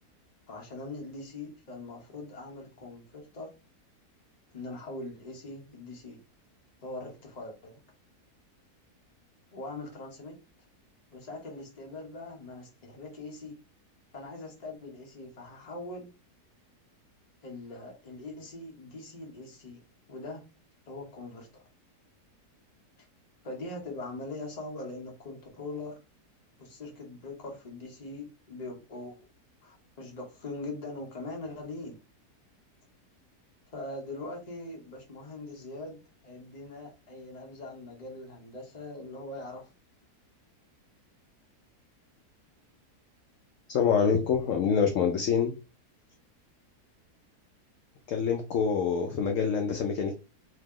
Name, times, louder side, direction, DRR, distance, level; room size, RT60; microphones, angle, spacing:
voice 1, 0.5-3.5 4.5-6.2 6.8-7.8 9.5-10.3 11.1-13.5 14.1-16.1 17.4-19.8 20.1-20.4 20.9-21.5 23.4-25.9 26.6-29.2 29.6-32.0 33.7-39.7, left 2 dB, 30° left, 0 dB, 0.9 m, -41 dB
voice 2, 43.7-45.5 48.1-50.1, left 6 dB, 65° left, 4 dB, 0.8 m, -26 dB
2.9 x 2.9 x 3.6 m, 0.30 s
omnidirectional pair, 1.7 m